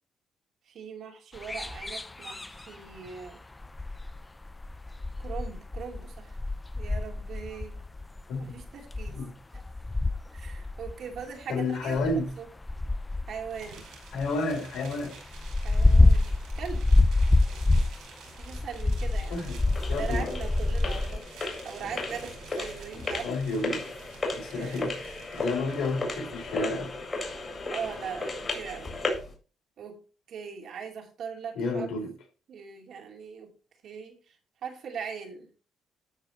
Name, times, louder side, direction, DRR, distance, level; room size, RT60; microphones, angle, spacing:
voice 1, 0.7-3.4 5.2-6.4 6.7-7.8 8.4-9.2 9.5-9.6 10.3-12.5 13.2-13.9 15.6-16.9 18.3-19.4 19.9-21.2 21.6-23.3 24.5-24.8 27.7-28.9 29.8-30.0 30.3-31.9 32.5-33.5 33.8-35.5, right 6 dB, 70° right, 2.6 m, -40 dB
sound 1, 1.3-3.0 3.3-9.2 9.5-11.2 11.9-14.3 14.5-14.6 14.9-18.1 18.4-21.2, left 2 dB, 15° left, 0.6 m, -26 dB
voice 2, 11.5-12.3 14.1-15.2 19.3-19.6 19.9-20.3 23.2-23.9 24.3-26.9 31.6-32.1, left 3 dB, 85° left, 4.0 m, -31 dB
sound 2, 13.5-26.3, right 5 dB, 85° right, 5.1 m, -50 dB
sound 3, 19.1-29.3, left 2 dB, 35° left, 4.2 m, -35 dB
13.0 x 5.0 x 4.3 m
cardioid pair, 90°, 0 cm